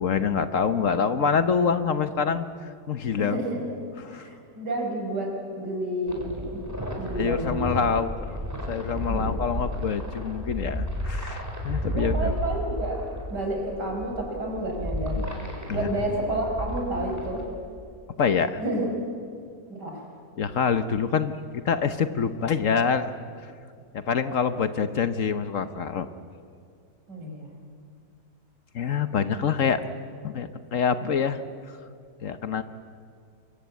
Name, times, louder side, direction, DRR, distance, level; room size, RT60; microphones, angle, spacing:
voice 1, 0.0-2.5 2.9-3.4 4.0-4.3 7.2-12.4 15.7-15.9 18.2-18.6 20.4-23.1 23.4-23.5 23.9-26.1 28.7-29.8 30.2-31.4 32.2-32.6, left 6 dB, 55° left, 11 dB, 1.2 m, -26 dB
voice 2, 3.2-3.6 4.1-6.7 7.0-7.8 9.0-9.4 11.9-15.3 15.7-17.5 18.6-18.9 19.7-20.1 27.1-27.5, right 1 dB, 85° right, 1 dB, 5.6 m, -30 dB
sound 1, 6.1-17.4, equal, 10° right, 4.3 m, -33 dB
25.5 x 23.0 x 8.3 m, 2.2 s
omnidirectional pair, 1.8 m